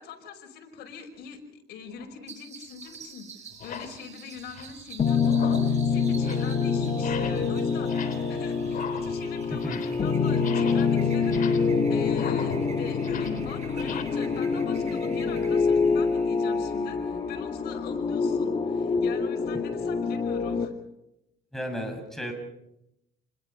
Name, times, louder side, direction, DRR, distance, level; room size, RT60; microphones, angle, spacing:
voice 1, 0.0-20.7, left 6 dB, 75° left, 3 dB, 5.3 m, -43 dB
sound 1, 1.9-2.1 2.9-3.0 3.5-4.0 4.4-4.8 5.2-5.8 6.1-6.5 6.9-7.5 7.8-8.4 8.6-10.1 10.3-14.0, left 7 dB, 50° left, 3.3 m, -39 dB
sound 2, 2.3-17.5, right 6 dB, 40° right, 7.8 m, -48 dB
sound 3, 5.0-20.7, left 5 dB, 35° left, 1.7 m, -26 dB
voice 2, 9.5-9.8 21.5-22.3, equal, ahead, 2 dB, 6.5 m, -33 dB
28.5 x 21.0 x 5.6 m, 0.84 s
cardioid pair, 110°, 17 cm